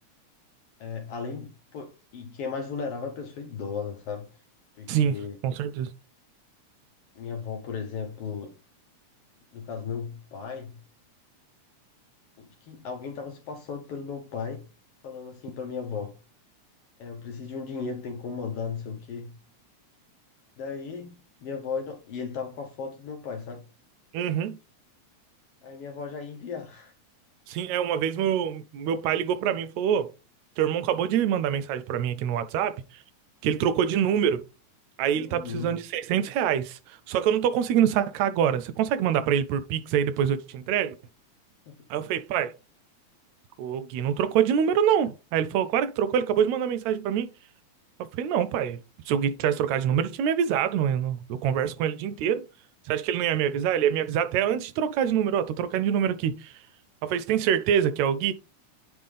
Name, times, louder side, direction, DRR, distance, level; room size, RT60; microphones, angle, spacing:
voice 1, 0.8-4.3 4.8-5.4 7.1-8.6 9.5-10.8 12.4-14.7 15.0-16.2 17.0-19.3 20.6-23.6 25.6-26.9 35.1-35.8 41.7-41.8, left 5 dB, 65° left, 1.5 m, -36 dB
voice 2, 5.4-5.9 24.1-24.6 27.5-30.1 30.6-32.8 33.4-34.4 35.0-41.0 41.9-42.5 43.6-47.3 48.1-48.8 49.1-52.5 52.9-56.5 57.0-58.3, right 9 dB, 80° right, 1.7 m, -25 dB
10.0 x 3.6 x 3.3 m
omnidirectional pair, 3.4 m